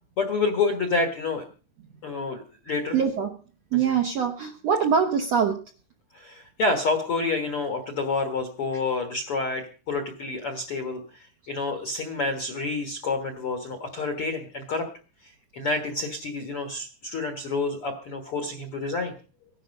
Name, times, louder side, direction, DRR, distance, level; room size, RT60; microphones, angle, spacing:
voice 1, 0.2-1.4 2.0-3.1 3.7-4.0 6.1-14.9 15.2-19.1, left 3 dB, 60° left, 6 dB, 1.4 m, -29 dB
voice 2, 2.9-3.3 3.7-5.6, right 7 dB, 65° right, 3 dB, 1.6 m, -23 dB
15.5 x 11.5 x 5.2 m, 0.39 s
omnidirectional pair, 4.6 m